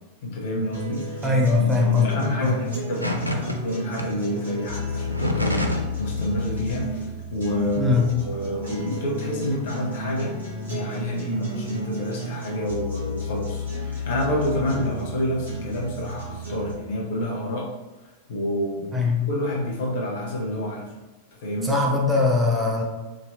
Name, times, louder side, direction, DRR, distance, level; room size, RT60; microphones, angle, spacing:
voice 1, 0.2-1.2 1.6-17.7 18.3-20.9 21.4-21.7, left 1 dB, 55° left, -2 dB, 0.8 m, -28 dB
sound 1, 0.7-16.7, left 1 dB, 70° right, 1.4 m, -33 dB
voice 2, 1.2-2.6 7.8-8.1 18.9-19.2 21.6-22.8, left 3 dB, 10° right, -2 dB, 0.6 m, -21 dB
sound 2, 3.0-3.6 4.0-4.1 4.9-5.9 6.2-6.5, left 1 dB, 90° right, 0.3 m, -27 dB
3.1 x 2.7 x 2.6 m, 1.2 s
figure-of-eight pair, 90°, 0 cm